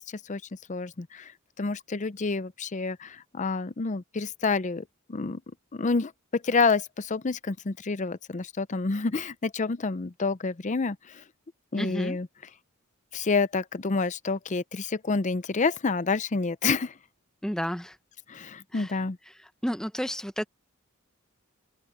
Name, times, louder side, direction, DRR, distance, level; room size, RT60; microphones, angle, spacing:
voice 1, 0.1-0.4 0.7-1.3 1.6-5.4 5.7-11.2 11.7-12.3 13.1-16.9 18.3-19.2, left 4 dB, 35° left, 0.6 m, -28 dB
voice 2, 11.7-12.2 17.4-18.0 18.7-19.0 19.4-20.5, equal, 5° left, 0.9 m, -31 dB
head